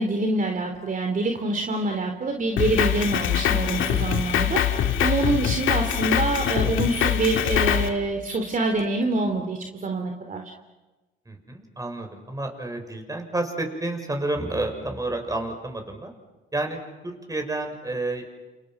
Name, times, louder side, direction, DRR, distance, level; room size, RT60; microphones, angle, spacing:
voice 1, 0.0-4.6 5.0-10.4, right 2 dB, 40° right, 4 dB, 3.0 m, -26 dB
Fart, 0.7-0.8 3.5-5.8 6.4-6.5 7.8-7.9 8.3-8.4 8.8-9.0, left 2 dB, 15° left, 4.7 m, -43 dB
Drum kit, 2.6-7.9, left 9 dB, 80° left, 2.2 m, -23 dB
voice 2, 11.3-16.1 16.5-16.8 17.0-18.2, right 2 dB, 15° right, 5 dB, 6.5 m, -30 dB
30.0 x 29.5 x 6.0 m, 1.1 s
cardioid pair, 90°, 20 cm